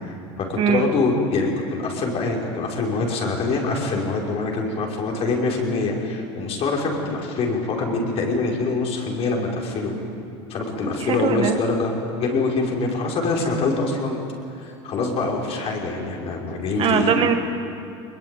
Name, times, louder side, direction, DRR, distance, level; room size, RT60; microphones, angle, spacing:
voice 1, 0.0-9.9 10.5-11.9 12.2-14.2 14.6-17.1, left 3 dB, 45° left, -1 dB, 5.6 m, -24 dB
voice 2, 0.6-0.9 11.0-11.6 16.8-17.4, right 8 dB, 40° right, 6 dB, 1.7 m, -21 dB
22.0 x 21.5 x 9.3 m, 2.7 s
supercardioid pair, 120°, 14 cm